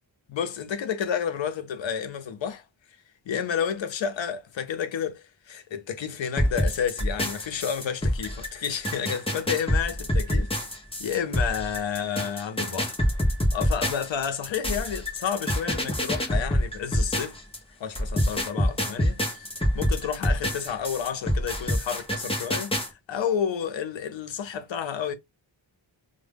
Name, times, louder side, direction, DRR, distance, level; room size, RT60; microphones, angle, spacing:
voice 1, 0.3-2.6 3.3-10.5 11.0-13.0 13.5-17.4 17.8-19.5 19.7-22.7 23.1-25.1, left 8 dB, 75° left, 0.6 m, -30 dB
sound 1, 6.4-17.6 17.9-22.9, equal, 10° left, 0.6 m, -26 dB
2.1 x 2.0 x 3.3 m
wide cardioid pair, 90°, 46 cm